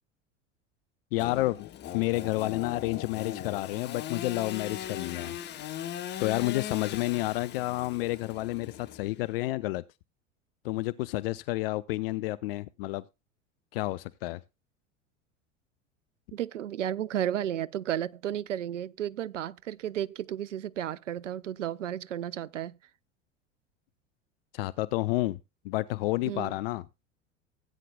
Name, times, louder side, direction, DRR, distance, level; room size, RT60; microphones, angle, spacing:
voice 1, 1.1-1.7 1.9-5.4 6.2-9.8 10.6-13.0 13.7-14.4 24.5-25.4 25.6-26.8, left 18 dB, 50° left, 0.5 m, -30 dB
Engine / Sawing, 1.2-9.4, left 11 dB, 30° left, 0.8 m, -39 dB
voice 2, 16.3-22.7 26.3-26.5, right 10 dB, 75° right, 0.5 m, -33 dB
17.0 x 9.2 x 2.3 m
figure-of-eight pair, 75°, 37 cm